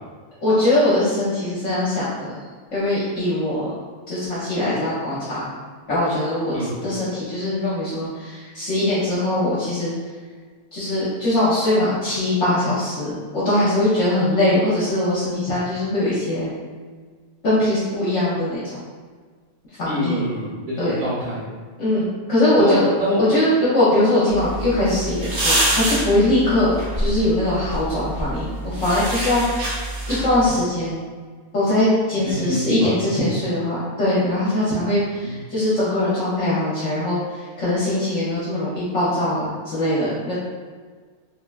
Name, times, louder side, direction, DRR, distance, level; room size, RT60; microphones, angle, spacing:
voice 1, 0.4-2.3 2.7-3.7 4.1-5.5 5.9-6.5 6.8-9.9 10.7-16.5 17.4-18.6 19.8-20.2 20.8-21.0 21.8-22.9 23.2-29.7 30.1-31.0 31.5-37.2 37.6-40.3, left 1 dB, 60° left, -10 dB, 1.0 m, -21 dB
voice 2, 6.5-6.9 19.8-21.4 22.6-23.2 32.2-33.0 35.2-35.3, equal, 85° right, -12 dB, 1.6 m, -25 dB
sound 1, 24.3-30.5, right 1 dB, 55° right, 0.7 m, -26 dB
3.2 x 2.2 x 2.3 m, 1.5 s
omnidirectional pair, 1.5 m